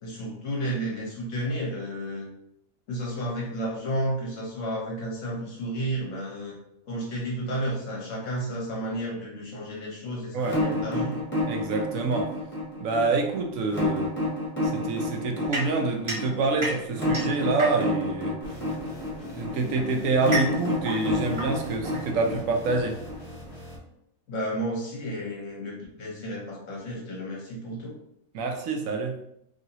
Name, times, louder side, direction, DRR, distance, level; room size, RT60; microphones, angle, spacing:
voice 1, 0.0-2.3 2.9-6.6 6.9-11.2 24.3-28.0, right 1 dB, 65° left, -3 dB, 1.3 m, -32 dB
sound 1, 10.4-23.3, left 1 dB, 10° left, 0.9 m, -29 dB
voice 2, 11.5-12.3 12.8-14.1 14.6-18.3 19.3-23.0 28.3-29.2, right 3 dB, 75° right, 3 dB, 0.9 m, -27 dB
sound 2, 15.5-18.1 19.1-22.5, right 1 dB, 30° right, 0.6 m, -34 dB
sound 3, 18.4-23.8, left 1 dB, 40° left, 1.2 m, -42 dB
3.1 x 2.8 x 2.7 m, 0.76 s
omnidirectional pair, 1.5 m